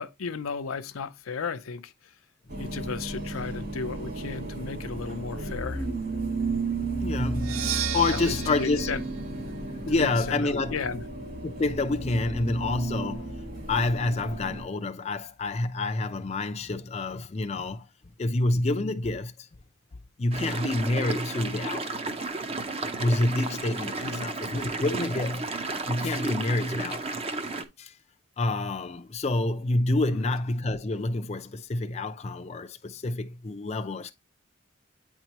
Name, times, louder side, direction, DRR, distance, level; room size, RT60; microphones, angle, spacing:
voice 1, 0.0-1.9 2.6-5.9 8.1-9.0 9.9-11.0 24.0-24.3 30.1-30.3, left 5 dB, 90° left, 0.6 m, -34 dB
sound 1, 2.5-14.6, right 2 dB, 45° right, 2.0 m, -33 dB
voice 2, 7.0-9.0 9.9-10.8 11.4-13.4 13.7-17.9 18.2-19.5 20.2-22.0 23.0-25.5 25.8-27.2 27.8-28.0 28.4-34.1, left 2 dB, 30° left, 0.4 m, -28 dB
Percussion, 7.3-11.1, right 9 dB, 80° right, 0.5 m, -36 dB
sound 2, 20.3-27.6, right 3 dB, 30° right, 0.6 m, -33 dB
8.9 x 4.5 x 2.9 m
head